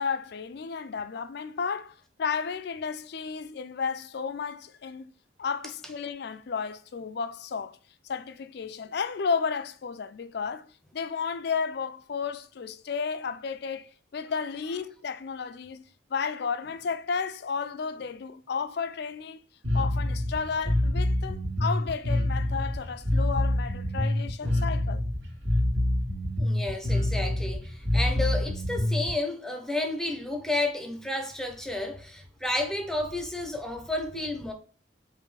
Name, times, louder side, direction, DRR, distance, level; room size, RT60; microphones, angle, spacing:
voice 1, 0.0-5.1 5.4-7.8 8.0-10.7 10.9-15.9 16.1-19.4 19.7-25.0, left 5 dB, 55° left, 0.4 m, -33 dB
Bass guitar, 19.6-29.1, left 1 dB, 65° right, 2.0 m, -26 dB
voice 2, 26.4-34.5, left 2 dB, ahead, 0.7 m, -31 dB
5.0 x 2.7 x 3.2 m
head